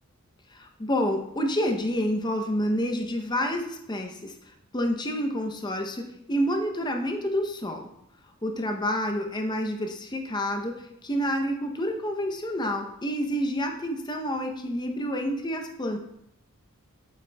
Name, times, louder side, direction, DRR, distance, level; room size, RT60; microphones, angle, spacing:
voice 1, 0.5-7.9 8.4-16.0, equal, 20° left, 4 dB, 0.6 m, -28 dB
8.3 x 6.6 x 2.2 m, 0.78 s
head